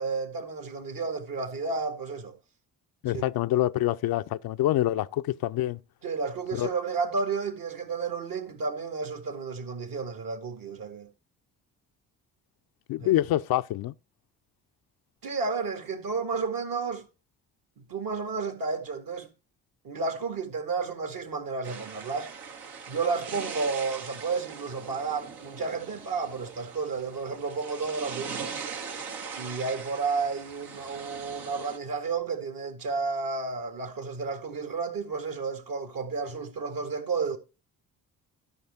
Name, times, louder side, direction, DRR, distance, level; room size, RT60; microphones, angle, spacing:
voice 1, 0.0-2.4 3.1-3.2 6.0-11.1 13.0-13.1 15.2-17.0 17.8-19.3 19.8-22.3 22.9-28.6 29.4-37.4, right 4 dB, 60° right, 2.0 m, -32 dB
voice 2, 3.0-5.8 6.5-6.7 12.9-13.9, left 14 dB, 65° left, 0.6 m, -26 dB
sound 1, 21.6-31.8, right 6 dB, 75° right, 1.6 m, -41 dB
12.5 x 5.5 x 4.1 m
supercardioid pair, 55°, 39 cm